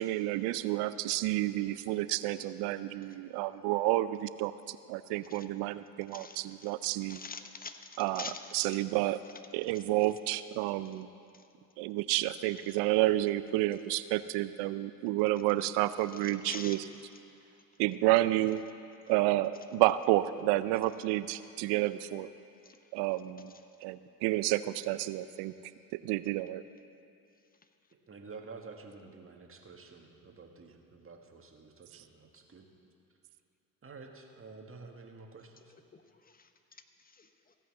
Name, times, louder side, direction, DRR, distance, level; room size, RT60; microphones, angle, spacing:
voice 1, 0.0-7.2 8.0-9.2 9.5-11.1 11.8-16.8 17.8-18.6 19.1-22.3 22.9-23.5 23.8-25.5 26.0-26.6, right 16 dB, 70° right, 14 dB, 0.5 m, -30 dB
voice 2, 6.1-6.7 7.1-8.8 9.7-9.8 11.3-11.4 16.2-16.8 22.6-22.8 35.9-37.6, left 4 dB, 20° left, 8 dB, 1.0 m, -46 dB
voice 3, 28.1-32.7 33.8-35.7, right 4 dB, 30° right, 2 dB, 1.7 m, -50 dB
16.0 x 5.7 x 7.3 m, 2.7 s
hypercardioid pair, 60°, 42 cm